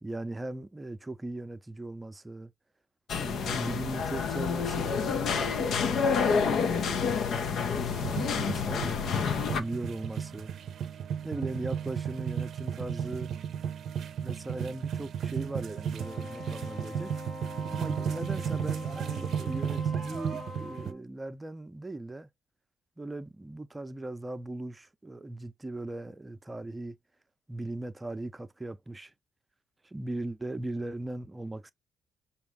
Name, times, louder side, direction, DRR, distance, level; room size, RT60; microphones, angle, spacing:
voice 1, 0.0-2.5 3.1-9.0 9.6-10.5 11.2-13.3 14.2-17.1 17.7-22.3 23.0-27.0 27.5-29.1 29.8-31.7, right 2 dB, 15° right, 0.6 m, -38 dB
sound 1, 3.1-9.6, left 6 dB, 70° left, 0.6 m, -28 dB
sound 2, 7.9-20.9, right 8 dB, 65° right, 0.5 m, -34 dB
Wind instrument woodwind instrument, 16.0-21.0, left 3 dB, 40° left, 0.8 m, -44 dB
5.0 x 2.4 x 3.3 m
cardioid pair, 90°, 0 cm